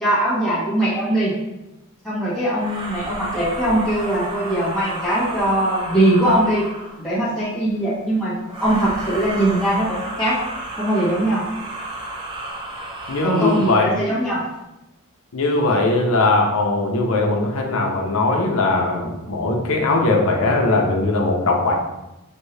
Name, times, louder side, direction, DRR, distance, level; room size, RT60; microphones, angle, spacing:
voice 1, 0.0-1.3 2.0-6.6 7.0-10.4 10.8-11.4 13.2-14.4, right 1 dB, ahead, -11 dB, 1.3 m, -21 dB
sound 1, 2.5-7.1 8.4-13.9, right 2 dB, 20° right, 0.6 m, -32 dB
voice 2, 13.1-13.9 15.3-21.7, left 2 dB, 65° left, 0 dB, 0.8 m, -19 dB
5.2 x 2.7 x 3.3 m, 0.96 s
head